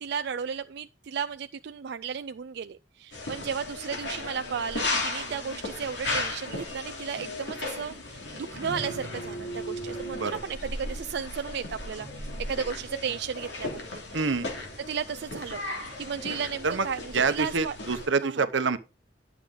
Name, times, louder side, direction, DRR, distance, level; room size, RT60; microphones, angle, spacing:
voice 1, 0.0-14.0 14.8-15.6 16.0-17.8 18.2-18.5, right 7 dB, 65° right, 0.4 m, -34 dB
sound 1, 3.1-18.1, left 2 dB, 70° left, 2.9 m, -35 dB
voice 2, 14.1-14.5 16.6-16.9 17.1-18.8, right 4 dB, 90° right, 0.9 m, -26 dB
10.5 x 7.2 x 3.8 m
head